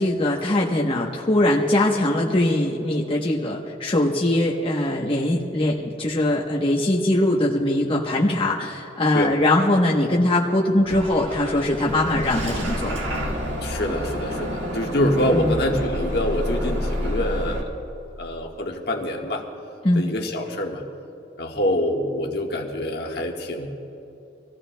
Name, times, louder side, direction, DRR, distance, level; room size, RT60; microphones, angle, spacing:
voice 1, 0.0-13.0 15.3-15.5 19.8-20.1, left 1 dB, 30° left, -3 dB, 1.0 m, -21 dB
Bus / Engine starting, 10.9-17.6, equal, 85° right, 1.8 m, -29 dB
voice 2, 13.5-17.7 18.2-19.5 19.9-20.8 21.4-23.7, left 1 dB, 60° left, 1 dB, 1.5 m, -25 dB
26.0 x 15.5 x 2.2 m, 2.8 s
head